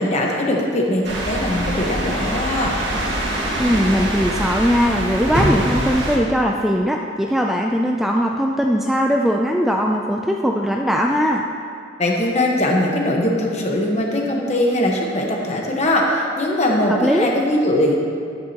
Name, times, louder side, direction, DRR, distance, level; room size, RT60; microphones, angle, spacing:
voice 1, 0.0-2.7 12.0-18.0, left 1 dB, 35° left, -1 dB, 1.2 m, -20 dB
sound 1, 1.0-6.2, right 1 dB, 60° right, 2.0 m, -23 dB
voice 2, 3.6-11.4 16.9-17.3, equal, ahead, 0 dB, 0.3 m, -20 dB
11.0 x 9.5 x 2.9 m, 2.4 s
head